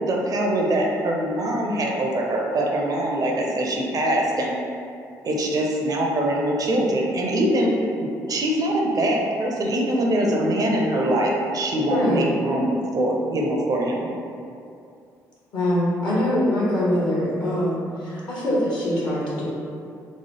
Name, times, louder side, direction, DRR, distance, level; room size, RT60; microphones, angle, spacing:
voice 1, 0.1-4.6 5.2-7.7 8.0-14.1, right 1 dB, 45° right, -1 dB, 0.5 m, -23 dB
voice 2, 11.9-12.3 15.5-19.4, left 1 dB, 60° left, -6 dB, 1.0 m, -23 dB
3.0 x 2.0 x 3.1 m, 2.5 s
hypercardioid pair, 50°, 9 cm